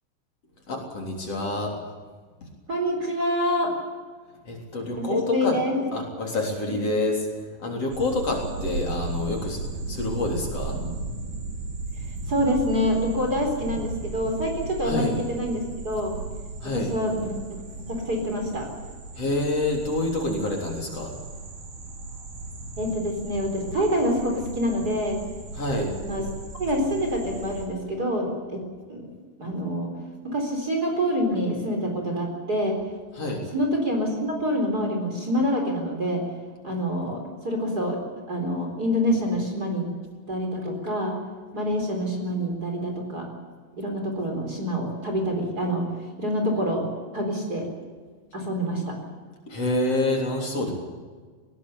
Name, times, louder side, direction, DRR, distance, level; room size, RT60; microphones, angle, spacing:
voice 1, 0.7-1.7 4.4-5.6 5.9-7.3 7.6-9.6 9.9-10.8 14.8-15.1 16.6-16.9 19.1-21.2 22.1-22.2 25.5-25.9 33.1-33.4 49.5-50.7, left 2 dB, 45° left, 1 dB, 4.4 m, -27 dB
voice 2, 2.7-3.7 5.0-5.7 12.3-16.1 16.6-17.6 17.9-18.7 22.8-25.2 25.8-26.3 26.6-28.6 28.9-29.1 29.4-29.9 30.2-32.8 33.5-36.2 36.6-38.0 38.3-39.9 40.3-41.2 41.5-43.3 43.8-45.9 46.2-46.9 47.1-47.6 48.3-49.0, equal, 25° right, 2 dB, 4.4 m, -26 dB
sound 1, 7.9-27.7, right 3 dB, 65° right, 4.6 m, -36 dB
20.0 x 18.5 x 8.5 m, 1.5 s
omnidirectional pair, 3.8 m